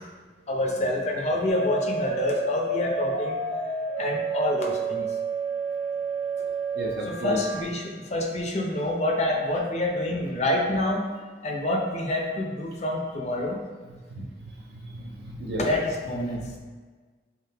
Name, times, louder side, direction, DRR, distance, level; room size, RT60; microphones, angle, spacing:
voice 1, 0.5-3.4 4.0-5.1 6.4-6.5 7.0-11.0 11.4-13.6 15.6-16.4, left 1 dB, 40° left, 1 dB, 0.5 m, -27 dB
sound 1, 1.5-7.6, right 3 dB, 85° left, 0.6 m, -30 dB
voice 2, 6.7-7.4 14.1-15.7 16.3-16.6, right 1 dB, 65° right, 0 dB, 0.6 m, -35 dB
3.8 x 3.6 x 2.8 m, 1.4 s
head